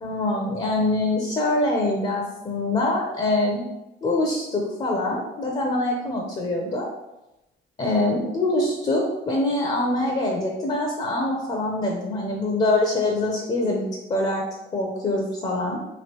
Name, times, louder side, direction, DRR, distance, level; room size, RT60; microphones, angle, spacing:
voice 1, 0.0-3.7 4.0-6.9 7.8-13.8 14.1-14.4 14.7-15.8, left 2 dB, 30° left, -1 dB, 0.6 m, -24 dB
3.1 x 2.8 x 2.9 m, 0.94 s
cardioid pair, 90°, 20 cm